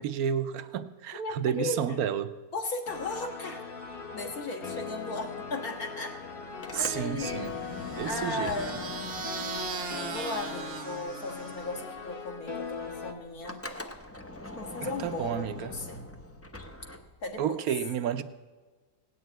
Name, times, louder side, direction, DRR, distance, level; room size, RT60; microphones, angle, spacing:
voice 1, 0.0-2.3 6.7-7.5 8.0-8.5 14.8-15.7 17.4-18.2, right 8 dB, 70° right, 1.2 m, -31 dB
voice 2, 1.1-1.8 2.5-3.6 4.1-6.2 6.8-7.4 7.6-8.9 9.3-9.7 10.0-13.7 14.5-16.0 17.2-17.6, left 2 dB, 65° left, 2.1 m, -36 dB
sound 1, 2.9-13.1, left 5 dB, 40° left, 1.0 m, -40 dB
Sliding door, 6.5-10.8 11.1-17.4, left 1 dB, 15° left, 0.4 m, -43 dB
sound 2, 7.3-11.9, right 5 dB, 45° right, 0.9 m, -39 dB
17.5 x 6.8 x 9.2 m
omnidirectional pair, 1.7 m